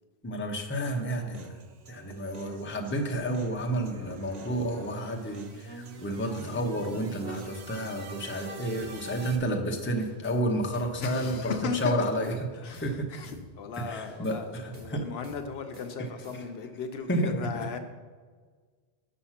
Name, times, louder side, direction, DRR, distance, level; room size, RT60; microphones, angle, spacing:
voice 1, 0.2-1.6 1.9-11.6 11.8-13.1 13.9-14.4 14.6-15.1 17.1-17.5, right 1 dB, 15° left, 2 dB, 0.6 m, -31 dB
Human voice, 0.8-8.8, right 5 dB, 50° right, 0.5 m, -51 dB
sound 1, 3.2-9.4, right 3 dB, 70° right, 1.1 m, -46 dB
sound 2, 8.7-9.0 9.2-9.5 9.7-10.4 10.7-11.0 11.2-11.5 11.7-12.4 12.7-13.0 13.2-13.5 13.7-14.4 14.7-15.0 15.2-15.5 15.7-16.6, equal, 85° right, 2.6 m, -50 dB
voice 2, 11.0-12.1 12.6-17.8, left 6 dB, 70° left, 7 dB, 0.9 m, -37 dB
6.3 x 5.7 x 5.7 m, 1.5 s
omnidirectional pair, 1.1 m